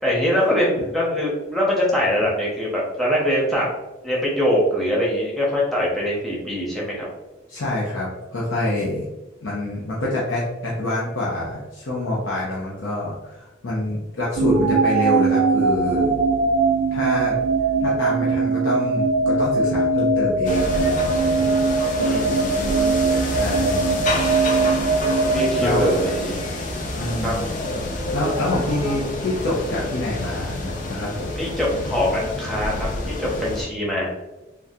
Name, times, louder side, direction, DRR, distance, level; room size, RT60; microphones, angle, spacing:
voice 1, 0.0-3.7 4.0-7.1 22.0-23.6 25.3-26.3 27.2-27.4 31.4-34.1, equal, ahead, -5 dB, 0.7 m, -23 dB
voice 2, 7.5-9.1 9.4-16.1 16.9-17.4 17.8-21.5 23.3-24.1 25.6-25.9 27.0-27.4 28.1-31.3, left 1 dB, 90° left, -5 dB, 0.7 m, -26 dB
sound 1, 14.4-26.5, right 4 dB, 75° right, 0.3 m, -21 dB
sound 2, 20.4-33.6, left 2 dB, 40° left, 0.5 m, -28 dB
3.6 x 2.3 x 2.7 m, 1.1 s
head